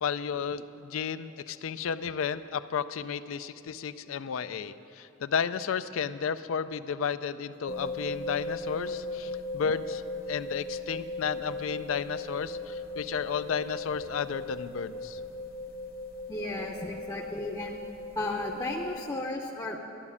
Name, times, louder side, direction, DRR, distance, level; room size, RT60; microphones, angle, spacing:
voice 1, 0.0-10.0 10.3-15.2, left 6 dB, 80° left, 13 dB, 0.4 m, -33 dB
sound 1, 7.7-19.0, left 2 dB, 45° left, 1.0 m, -38 dB
voice 2, 16.3-17.8 18.1-19.8, left 2 dB, 20° left, 0 dB, 0.6 m, -34 dB
12.0 x 7.1 x 9.7 m, 2.8 s
head